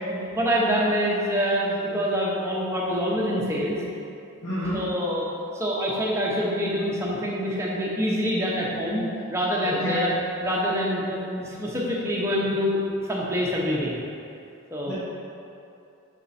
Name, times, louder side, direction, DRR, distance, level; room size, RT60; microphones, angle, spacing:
voice 1, 0.1-3.8 4.7-5.2 5.5-9.0 9.3-10.1 10.4-12.8 13.1-14.0 14.7-14.9, equal, 10° right, -5 dB, 0.8 m, -25 dB
voice 2, 4.4-4.8 9.6-10.0 14.9-15.0, left 1 dB, 80° left, -11 dB, 1.4 m, -29 dB
5.9 x 4.4 x 4.2 m, 2.7 s
head